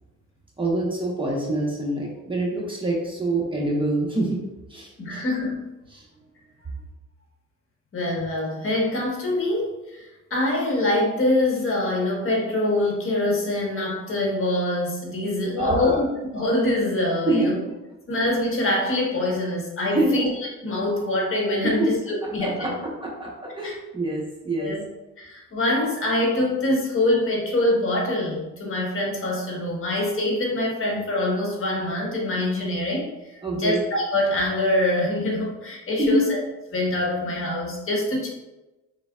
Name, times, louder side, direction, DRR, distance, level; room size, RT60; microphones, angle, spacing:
voice 1, 0.6-4.4 4.7-5.2 5.9-6.0 15.5-16.0 17.3-17.5 19.9-20.2 21.6-21.9 22.4-24.8 33.4-33.8 36.0-36.3, right 1 dB, 15° right, -3 dB, 1.2 m, -25 dB
voice 2, 5.0-5.7 7.9-16.1 16.3-17.5 18.1-20.3 20.6-22.7 23.6-23.7 24.6-24.8 25.2-36.4 36.7-38.3, left 1 dB, 45° left, -2 dB, 1.5 m, -24 dB
5.3 x 3.9 x 2.4 m, 1.0 s
cardioid pair, 90°, 30 cm